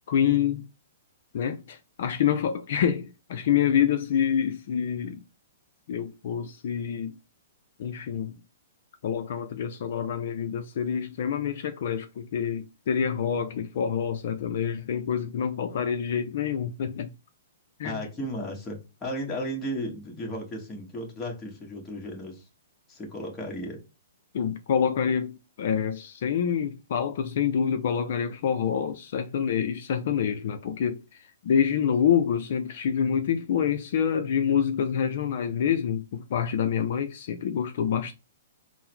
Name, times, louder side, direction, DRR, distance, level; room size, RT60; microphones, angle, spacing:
voice 1, 0.1-0.6 1.3-5.2 5.9-7.1 7.8-8.4 9.0-17.1 17.8-18.0 24.3-38.1, left 8 dB, 60° left, 0.4 m, -27 dB
voice 2, 17.8-22.4 22.9-23.8, equal, 15° left, 1.3 m, -34 dB
3.7 x 2.0 x 4.4 m
hypercardioid pair, 145°, 0 cm